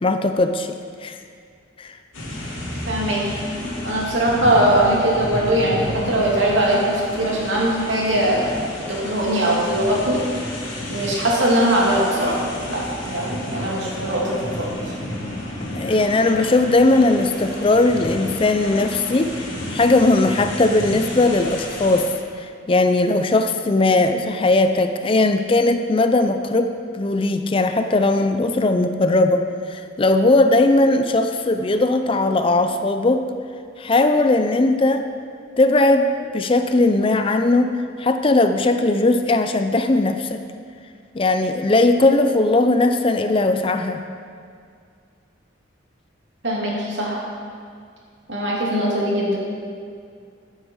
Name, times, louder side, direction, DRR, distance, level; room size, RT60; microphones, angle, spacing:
voice 1, 0.0-0.7 1.0-1.2 1.8-1.9 15.7-19.3 19.7-22.1 22.4-33.2 33.8-35.1 35.6-37.7 38.0-40.4 41.1-44.0, left 2 dB, 25° left, 8 dB, 0.4 m, -18 dB
sound 1, 2.1-22.0, left 1 dB, 90° left, 2.8 m, -31 dB
voice 2, 2.9-3.2 3.8-8.5 8.9-10.2 10.9-12.4 12.7-14.7 46.4-47.2 48.3-49.4, right 1 dB, 65° right, -4 dB, 2.7 m, -20 dB
13.0 x 8.9 x 4.6 m, 2.2 s
head